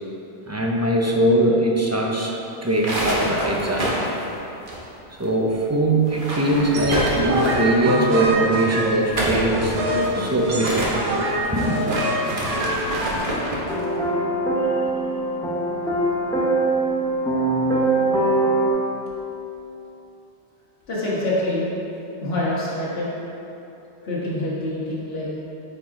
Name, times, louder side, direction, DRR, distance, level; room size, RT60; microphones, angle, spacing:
voice 1, 0.5-4.1 5.1-9.8 10.2-11.0 11.5-11.8, right 1 dB, 20° right, -1 dB, 0.4 m, -21 dB
sound 1, 2.6-5.3 5.5-5.6 6.0-7.8 8.9-13.7, equal, 50° right, 1.2 m, -27 dB
sound 2, 6.5-13.2, right 1 dB, 85° right, 1.2 m, -25 dB
sound 3, 13.7-18.7, right 2 dB, 5° left, 0.8 m, -22 dB
voice 2, 14.6-14.9 20.9-21.6 22.2-23.1 24.0-25.3, left 1 dB, 60° left, -8 dB, 1.7 m, -26 dB
9.0 x 4.4 x 3.7 m, 3.0 s
omnidirectional pair, 1.2 m